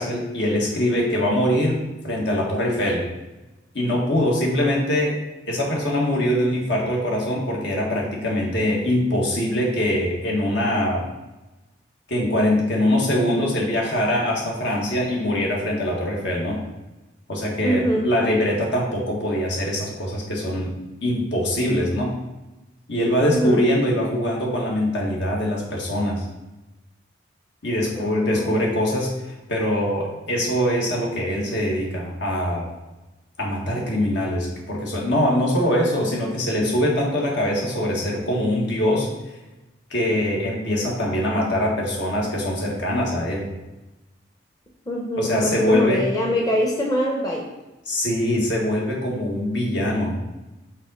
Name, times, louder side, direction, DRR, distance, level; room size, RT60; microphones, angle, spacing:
voice 1, 0.0-3.0 3.7-5.1 5.5-11.0 12.1-16.6 17.3-20.7 21.0-22.1 22.9-26.3 27.6-29.1 29.5-32.7 33.4-39.1 39.9-43.4 45.2-46.0 47.9-50.2, left 1 dB, 70° left, -2 dB, 1.6 m, -23 dB
voice 2, 17.6-18.1 23.2-23.7 28.0-28.6 44.9-47.5, equal, 20° left, -1 dB, 0.7 m, -24 dB
5.4 x 3.8 x 5.3 m, 1.1 s
head